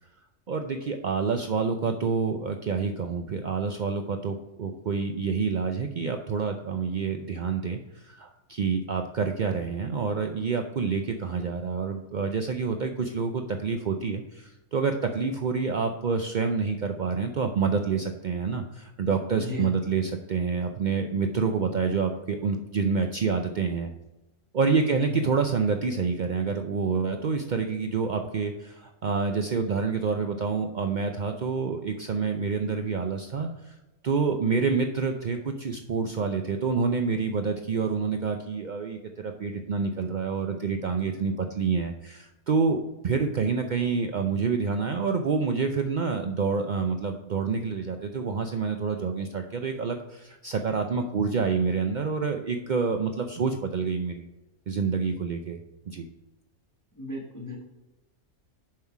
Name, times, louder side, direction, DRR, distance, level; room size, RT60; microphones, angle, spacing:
voice 1, 0.5-23.9 24.5-33.7 34.0-54.3 54.7-55.6 55.9-56.1, right 5 dB, 65° right, 5 dB, 0.4 m, -28 dB
voice 2, 19.4-19.7 24.9-25.0 57.0-57.6, left 2 dB, 15° left, -1 dB, 1.1 m, -34 dB
7.5 x 5.7 x 4.6 m, 1.0 s
omnidirectional pair, 1.6 m